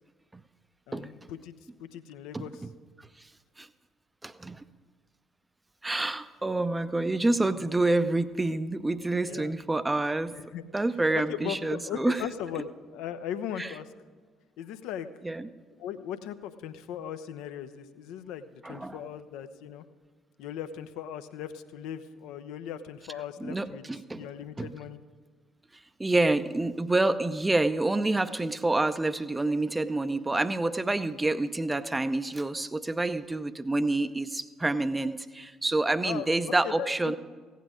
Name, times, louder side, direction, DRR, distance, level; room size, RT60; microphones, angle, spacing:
voice 1, 0.9-2.7 7.3-7.7 9.3-9.5 10.4-10.6 11.1-13.9 14.6-15.1 15.8-19.8 20.4-23.8 24.1-25.0 36.0-37.2, left 9 dB, 60° left, 10 dB, 0.6 m, -38 dB
voice 2, 2.3-2.7 3.6-3.7 4.2-4.6 5.8-10.4 10.7-12.2 13.6-13.7 15.2-15.5 18.6-19.0 23.4-24.2 24.6-24.7 26.0-37.2, right 2 dB, 15° right, 13 dB, 0.6 m, -28 dB
16.0 x 9.3 x 5.0 m, 1.5 s
figure-of-eight pair, 50°, 0 cm